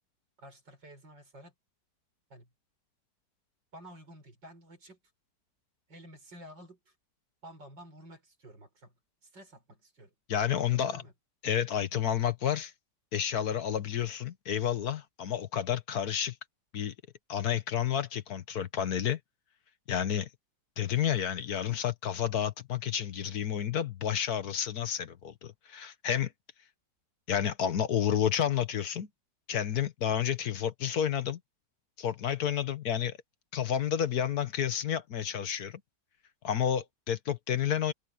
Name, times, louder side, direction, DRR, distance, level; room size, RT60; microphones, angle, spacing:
voice 1, 0.4-1.5 2.3-2.5 3.7-5.0 5.9-6.9 7.4-9.0 9.2-10.1 10.5-11.1, right 1 dB, 85° right, 6.5 m, -51 dB
voice 2, 10.3-11.0 11.4-12.7 13.1-16.3 16.7-16.9 17.3-19.2 19.9-20.3 20.8-26.3 27.3-29.1 29.5-31.4 32.0-33.2 33.5-35.8 36.4-37.9, left 9 dB, 60° left, 1.5 m, -30 dB
omnidirectional pair, 1.9 m